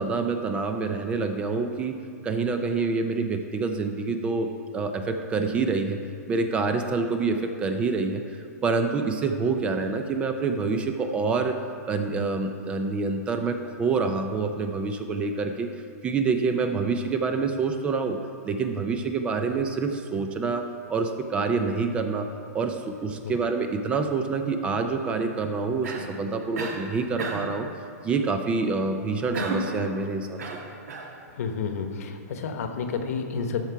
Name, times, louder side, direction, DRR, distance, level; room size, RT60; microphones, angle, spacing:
voice 1, 0.0-1.9 2.2-6.0 6.3-11.6 11.8-15.7 16.0-18.2 18.4-22.3 22.5-27.7 28.0-30.4, right 4 dB, 10° right, 6 dB, 0.3 m, -27 dB
Cough, 25.8-26.2 26.6-26.9 27.2-27.6 29.3-29.8 30.4-31.1, right 3 dB, 70° right, 1.5 m, -32 dB
voice 2, 31.3-33.7, left 5 dB, 60° left, 6 dB, 1.0 m, -30 dB
13.0 x 4.5 x 5.7 m, 2.4 s
hypercardioid pair, 160°, 9 cm